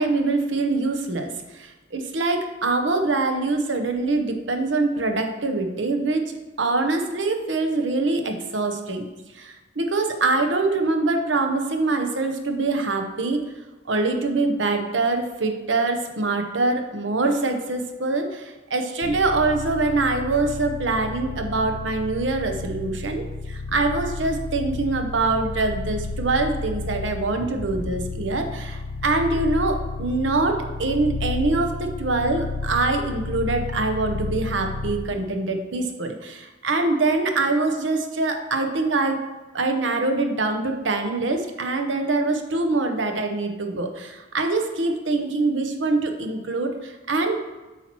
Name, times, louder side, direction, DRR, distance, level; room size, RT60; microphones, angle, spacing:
voice 1, 0.0-6.2 6.6-9.1 9.3-13.4 13.9-39.2 39.5-47.5, right 3 dB, 90° right, 5 dB, 0.9 m, -24 dB
sound 1, 19.0-35.2, left 3 dB, 80° left, 0.7 m, -32 dB
8.2 x 5.8 x 3.1 m, 1.1 s
head